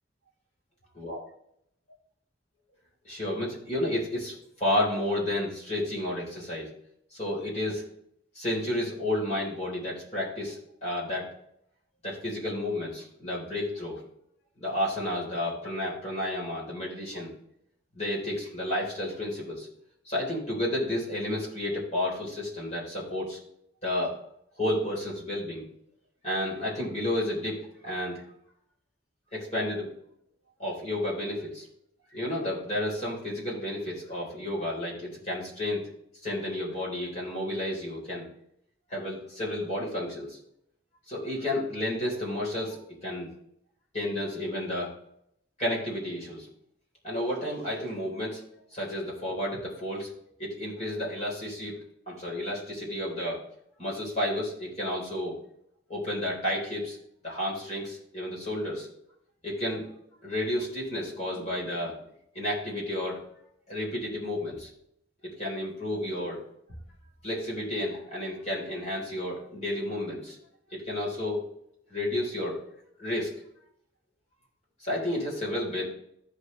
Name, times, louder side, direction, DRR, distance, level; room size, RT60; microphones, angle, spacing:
voice 1, 3.0-6.7 7.1-7.8 8.3-11.3 12.0-14.0 14.6-17.3 17.9-19.7 20.1-23.4 23.8-24.1 24.6-25.7 26.2-28.2 29.3-29.9 30.6-31.7 32.1-35.9 36.2-38.3 38.9-40.4 41.1-43.3 43.9-44.9 45.6-46.5 47.0-48.4 48.7-50.1 50.4-51.8 52.1-53.4 53.8-55.4 55.9-57.0 57.2-58.9 59.4-59.9 60.2-62.0 62.3-63.2 63.7-64.7 65.2-66.4 67.2-70.4 70.7-71.5 71.9-72.6 73.0-73.3 74.8-75.8, left 1 dB, 40° left, -5 dB, 4.0 m, -31 dB
15.0 x 5.0 x 3.2 m, 0.74 s
head